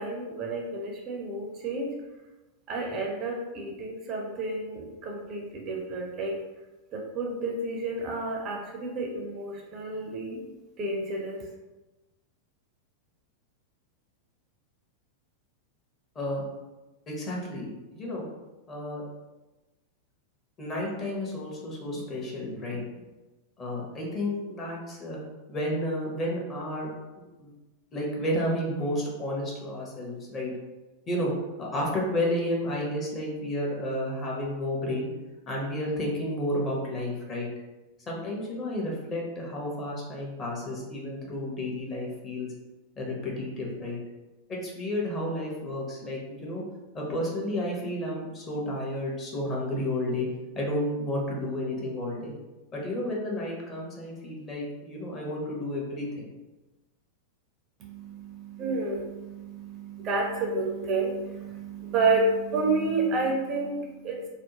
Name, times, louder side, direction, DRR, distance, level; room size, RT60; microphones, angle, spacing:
voice 1, 0.0-1.9 2.7-6.4 6.9-10.4 10.8-11.5 57.8-64.3, right 3 dB, 35° right, 0 dB, 0.4 m, -30 dB
voice 2, 17.1-18.2 18.7-19.0 20.6-22.8 23.6-25.2 25.5-26.9 27.2-27.5 27.9-30.5 31.1-31.3 31.6-35.1 35.5-37.5 38.1-42.5 43.0-44.0 44.5-46.6 46.9-50.3 50.5-52.3 52.7-56.2, left 1 dB, 25° left, -3 dB, 0.8 m, -31 dB
2.6 x 2.1 x 2.8 m, 1.1 s
figure-of-eight pair, 90°, 0 cm